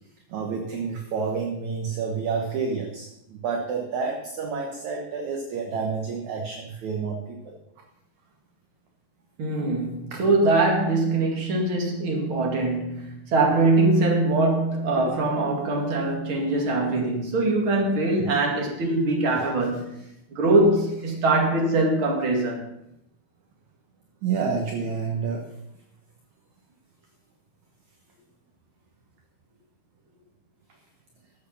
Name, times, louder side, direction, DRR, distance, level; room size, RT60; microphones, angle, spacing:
voice 1, 0.3-7.5 10.1-10.2 19.3-19.5 21.1-21.2 24.2-25.5, right 5 dB, 60° right, 2.2 m, -29 dB
voice 2, 9.4-19.9 20.3-22.7, right 2 dB, 40° right, 2.7 m, -22 dB
13.5 x 7.9 x 5.8 m
omnidirectional pair, 4.4 m